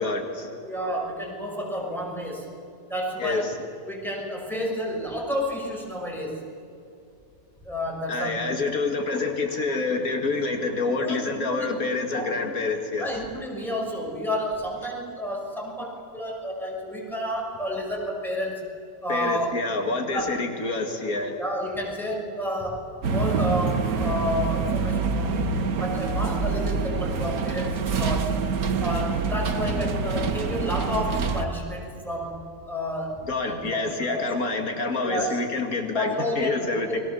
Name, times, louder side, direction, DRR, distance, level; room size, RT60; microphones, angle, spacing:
voice 1, 0.0-0.5 3.2-3.5 8.1-13.1 19.1-21.4 33.3-37.0, left 3 dB, 75° left, 4 dB, 2.4 m, -27 dB
voice 2, 0.6-2.5 2.9-3.5 3.8-6.4 7.6-8.4 11.0-11.8 12.1-12.5 13.0-18.7 19.0-19.6 20.1-20.3 21.4-28.4 28.8-33.2 33.5-34.3 35.0-35.4 35.9-37.0, equal, ahead, -2 dB, 5.6 m, -30 dB
sound 1, 23.0-31.5, right 4 dB, 90° right, 1.6 m, -26 dB
29.5 x 22.5 x 7.0 m, 2.7 s
omnidirectional pair, 1.5 m